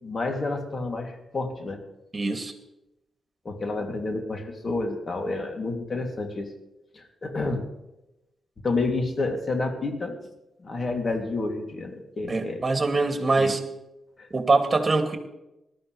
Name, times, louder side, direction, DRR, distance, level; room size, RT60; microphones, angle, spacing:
voice 1, 0.0-1.8 3.4-6.5 6.9-7.6 8.6-10.2 10.6-12.6 13.4-13.5 14.2-14.3, left 3 dB, 45° left, 3 dB, 2.8 m, -29 dB
voice 2, 2.1-2.5 12.3-13.6 14.3-15.2, right 3 dB, 35° right, 4 dB, 2.5 m, -23 dB
19.5 x 13.0 x 3.4 m, 0.93 s
supercardioid pair, 45°, 0 cm